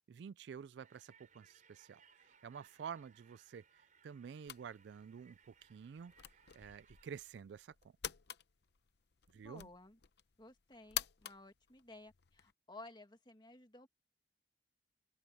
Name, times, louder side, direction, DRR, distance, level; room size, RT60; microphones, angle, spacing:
voice 1, 0.1-3.6 4.0-6.1 6.5-7.7 9.3-9.7, right 7 dB, 65° right, 0.3 m, -50 dB
sound 1, 0.8-7.2, right 7 dB, 45° right, 4.2 m, -68 dB
sound 2, 4.4-12.5, left 11 dB, 65° left, 0.7 m, -49 dB
voice 2, 9.3-10.0 10.4-13.9, left 2 dB, 25° left, 2.1 m, -56 dB
open air
head